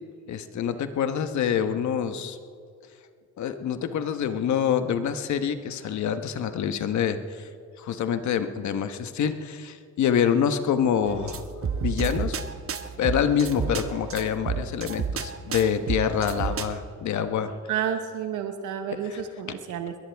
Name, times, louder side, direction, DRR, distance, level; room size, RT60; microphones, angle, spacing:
voice 1, 0.3-2.4 3.4-7.2 7.8-11.4 11.8-12.4 13.0-17.5, left 8 dB, 70° left, 9 dB, 1.2 m, -26 dB
sound 1, 11.1-16.8, right 6 dB, 45° right, 1.1 m, -31 dB
voice 2, 17.7-19.9, right 8 dB, 85° right, 6 dB, 1.1 m, -30 dB
22.0 x 19.0 x 3.5 m, 2.2 s
cardioid pair, 90°, 30 cm